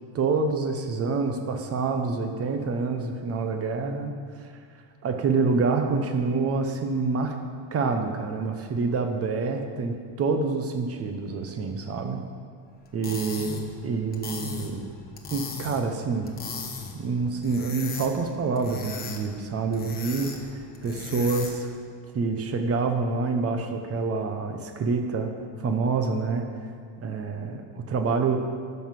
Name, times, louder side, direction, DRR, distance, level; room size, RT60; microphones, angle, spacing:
voice 1, 0.1-4.1 4.4-4.5 5.0-7.3 7.7-12.2 12.9-14.9 15.3-16.3 16.9-21.7 22.1-25.3 25.6-26.7 27.0-28.4, right 4 dB, 30° right, 5 dB, 0.9 m, -27 dB
sound 1, 12.8-21.7, left 5 dB, 20° left, 1.1 m, -38 dB
12.5 x 5.7 x 6.0 m, 2.2 s
cardioid pair, 145°, 48 cm